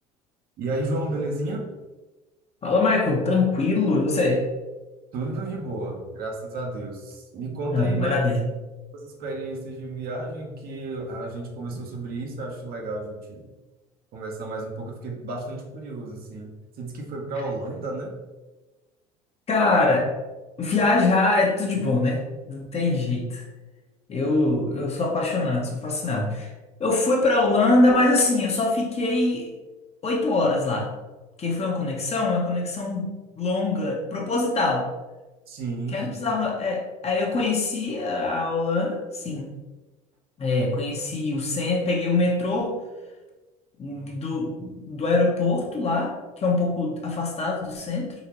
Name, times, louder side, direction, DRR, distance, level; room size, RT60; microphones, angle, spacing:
voice 1, 0.6-1.7 5.1-8.2 8.9-13.5 14.1-16.5 16.8-18.1 35.5-36.3, right 2 dB, 55° right, 1 dB, 0.9 m, -32 dB
voice 2, 2.6-4.5 7.7-8.4 19.5-20.1 20.6-22.2 22.5-23.4 24.1-26.5 26.8-29.5 30.0-30.9 31.4-34.9 35.9-39.5 40.4-42.7 43.8-48.1, left 3 dB, 35° left, -1 dB, 0.9 m, -23 dB
3.9 x 2.8 x 2.9 m, 1.2 s
hypercardioid pair, 75°, 19 cm